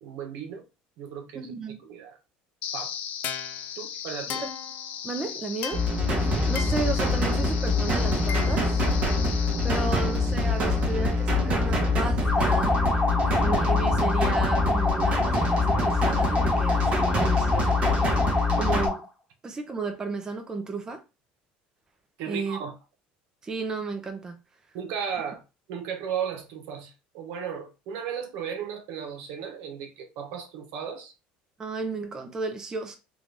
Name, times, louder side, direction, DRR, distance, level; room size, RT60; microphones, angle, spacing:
voice 1, 0.0-0.6 1.0-1.5 1.9-2.2 2.7-2.9 3.8-4.4 22.2-22.7 24.7-25.4 25.7-31.1, right 7 dB, 75° right, 1.0 m, -35 dB
voice 2, 1.3-1.8 4.4-4.5 5.0-5.8 6.5-8.8 9.3-12.8 13.4-19.0 19.4-21.0 22.3-22.6 23.4-24.4 31.6-33.0, right 3 dB, 20° right, 0.6 m, -33 dB
sound 1, 2.6-11.6, left 8 dB, 55° left, 0.6 m, -37 dB
sound 2, 5.7-18.9, left 2 dB, 40° right, 1.1 m, -24 dB
sound 3, 12.2-19.1, left 2 dB, 10° left, 1.1 m, -27 dB
3.8 x 2.5 x 3.3 m
cardioid pair, 135°, 3 cm